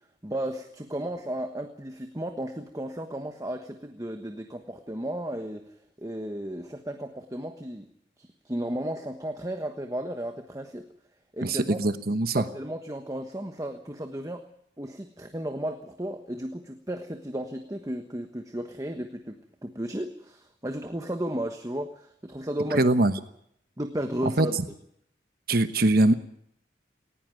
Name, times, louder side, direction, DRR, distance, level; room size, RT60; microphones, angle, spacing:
voice 1, 0.2-7.9 8.2-10.9 11.3-11.8 12.3-14.4 14.8-22.8 23.8-24.6, right 1 dB, 20° right, 6 dB, 1.3 m, -34 dB
voice 2, 11.4-12.4 22.7-23.1 24.4-24.5 25.5-26.1, right 2 dB, 50° right, 10 dB, 1.1 m, -22 dB
19.0 x 16.5 x 9.1 m, 0.72 s
head